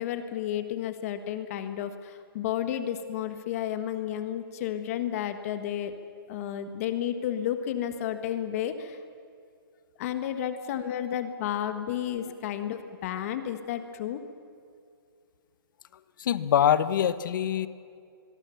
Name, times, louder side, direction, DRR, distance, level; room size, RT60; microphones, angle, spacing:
voice 1, 0.0-6.0 6.3-9.0 10.0-14.2, left 10 dB, 35° left, 9 dB, 1.5 m, -32 dB
voice 2, 16.2-17.7, left 9 dB, 55° left, 14 dB, 1.1 m, -24 dB
24.5 x 22.5 x 7.1 m, 2.3 s
hypercardioid pair, 155°, 13 cm